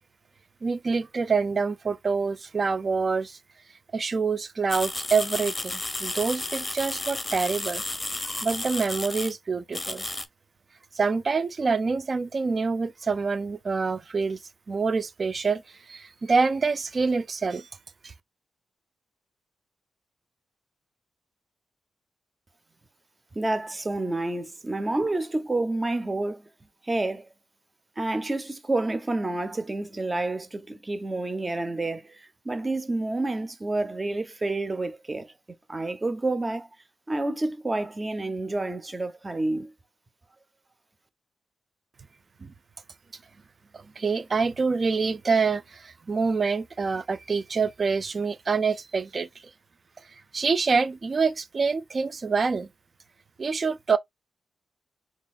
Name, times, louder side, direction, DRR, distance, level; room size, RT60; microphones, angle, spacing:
voice 1, 0.6-3.4 3.9-7.8 8.4-10.1 10.9-14.4 14.7-17.7 18.0-18.1 42.4-42.5 43.7-49.3 50.1-52.7 53.4-54.0, right 4 dB, 50° right, 0.6 m, -26 dB
sound 1, 4.7-9.3 9.7-10.3, left 2 dB, 20° left, 0.8 m, -32 dB
voice 2, 23.3-26.5 26.8-27.3 28.0-35.3 35.7-36.7 37.1-39.7, right 2 dB, 30° right, 1.1 m, -29 dB
3.9 x 3.6 x 2.4 m
supercardioid pair, 50°, 0 cm